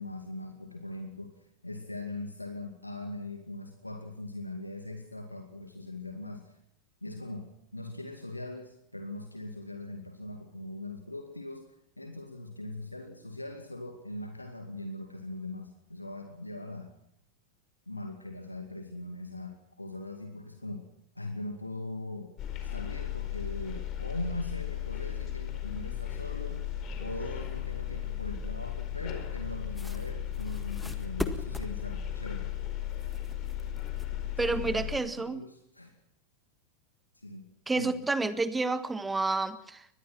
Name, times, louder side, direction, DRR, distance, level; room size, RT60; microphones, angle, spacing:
voice 1, 0.0-6.6 7.0-16.9 17.9-20.9 21.1-22.4 22.6-26.7 27.0-32.6 34.4-36.0 37.1-37.5 37.7-38.0, left 2 dB, 85° left, 5 dB, 2.3 m, -41 dB
sound 1, 22.4-35.0, left 11 dB, 35° left, 4.6 m, -36 dB
sound 2, 29.7-31.8 32.5-34.4, left 1 dB, 5° left, 1.7 m, -40 dB
voice 2, 34.4-35.4 37.7-39.9, right 3 dB, 10° right, 13 dB, 1.5 m, -29 dB
24.0 x 20.5 x 6.0 m, 0.71 s
figure-of-eight pair, 90°, 0 cm